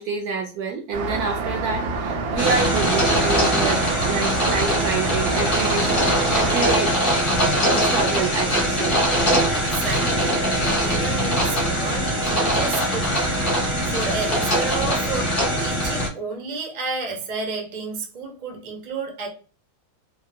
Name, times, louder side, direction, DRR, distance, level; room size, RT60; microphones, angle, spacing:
voice 1, 0.0-6.9 7.7-9.0, right 5 dB, 70° right, 0.9 m, -28 dB
Traffic noise roadway noise, 0.9-6.8, right 3 dB, 90° right, 1.4 m, -27 dB
sound 1, 2.4-16.1, equal, 45° left, 0.7 m, -22 dB
voice 2, 9.5-13.6 13.9-19.3, right 4 dB, 55° right, 0.4 m, -31 dB
3.5 x 2.1 x 2.6 m
omnidirectional pair, 2.0 m